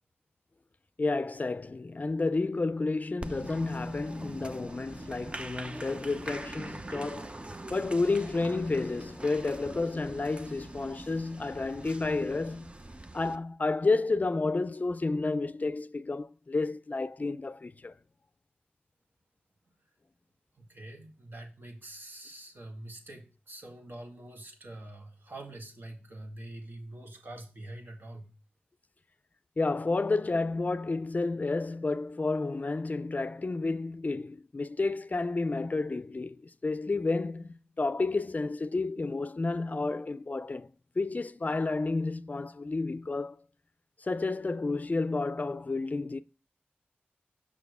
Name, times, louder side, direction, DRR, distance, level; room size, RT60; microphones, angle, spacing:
voice 1, 1.0-7.3 7.7-12.7 13.1-18.0 29.6-40.7 41.0-43.4 44.0-46.2, left 3 dB, 45° left, 0.4 m, -31 dB
Applause, 3.2-13.4, right 2 dB, 30° right, 0.6 m, -43 dB
voice 2, 20.6-28.3, right 1 dB, 65° right, 1.9 m, -45 dB
6.1 x 6.1 x 3.5 m
cardioid pair, 50°, 4 cm